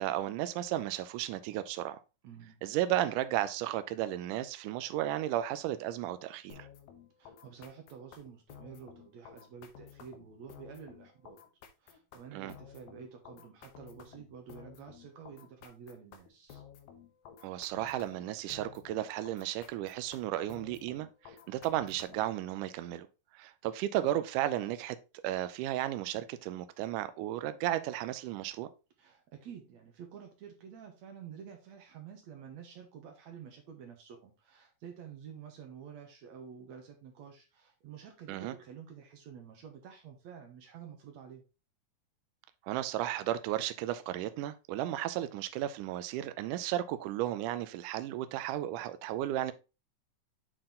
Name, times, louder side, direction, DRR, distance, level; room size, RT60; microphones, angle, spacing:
voice 1, 0.0-2.0 2.6-6.7 12.3-12.6 17.4-23.1 23.3-25.0 25.2-28.7 38.3-38.5 42.6-49.5, right 13 dB, 80° right, 2.1 m, -34 dB
voice 2, 2.2-2.6 7.2-11.4 11.8-16.6 29.0-41.4, right 7 dB, 65° right, 2.2 m, -50 dB
sound 1, 6.5-22.4, left 8 dB, 70° left, 2.2 m, -53 dB
7.6 x 4.4 x 3.7 m
omnidirectional pair, 3.8 m